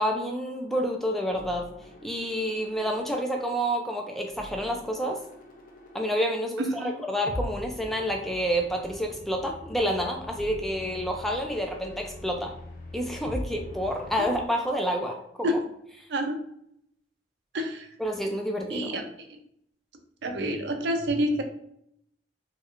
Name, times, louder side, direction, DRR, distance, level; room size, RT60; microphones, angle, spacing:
voice 1, 0.0-1.6 2.0-5.2 5.9-12.5 12.9-15.6 18.0-18.9, equal, ahead, 2 dB, 0.3 m, -29 dB
sound 1, 1.3-14.5, left 1 dB, 50° left, 0.6 m, -42 dB
voice 2, 6.6-6.9 15.4-15.5 16.1-16.4 17.5-17.9 18.7-19.4 20.2-21.4, equal, 70° right, 5 dB, 0.5 m, -28 dB
3.1 x 2.9 x 2.4 m, 0.71 s
head